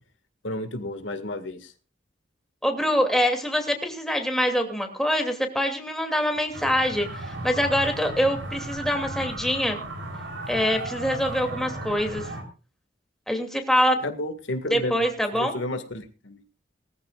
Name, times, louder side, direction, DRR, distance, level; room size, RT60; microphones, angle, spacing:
voice 1, 0.4-1.7 14.0-15.1 15.3-16.4, left 1 dB, 80° left, 7 dB, 1.9 m, -32 dB
voice 2, 2.6-9.8 10.5-12.3 13.3-14.0 14.7-15.6, equal, ahead, 3 dB, 2.7 m, -24 dB
sound 1, 6.5-12.4, right 2 dB, 80° right, 3.8 m, -35 dB
21.0 x 14.5 x 2.5 m, 0.34 s
head